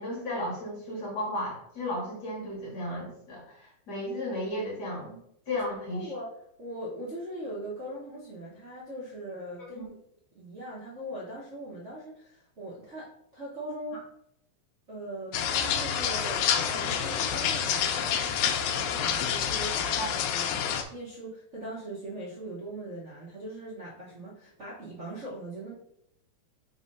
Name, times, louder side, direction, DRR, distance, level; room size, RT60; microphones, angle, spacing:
voice 1, 0.0-5.2 5.5-6.1 9.8-9.9 20.0-20.1, left 1 dB, 40° left, -3 dB, 1.9 m, -34 dB
voice 2, 5.9-6.3 6.6-9.9 10.3-14.0 14.9-25.7, right 1 dB, 85° right, -8 dB, 0.6 m, -40 dB
sound 1, 15.3-20.8, left 8 dB, 80° left, 2.0 m, -28 dB
4.3 x 4.0 x 5.4 m, 0.73 s
omnidirectional pair, 3.5 m